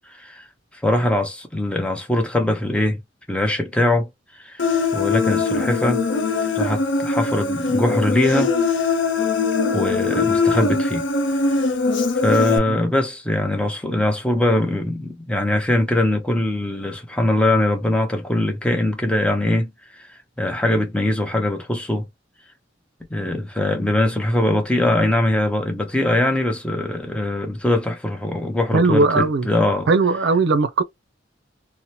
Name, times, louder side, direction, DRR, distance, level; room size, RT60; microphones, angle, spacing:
voice 1, 0.8-3.0 3.3-4.1 4.4-4.6 4.9-6.1 6.5-8.6 9.7-11.0 12.2-19.7 20.4-22.1 23.1-29.9, left 1 dB, 5° left, 0.6 m, -21 dB
Human voice, 4.6-12.6, left 4 dB, 70° left, 0.6 m, -21 dB
voice 2, 28.7-29.5 29.9-30.8, right 3 dB, 65° right, 0.5 m, -18 dB
2.8 x 2.1 x 2.7 m
head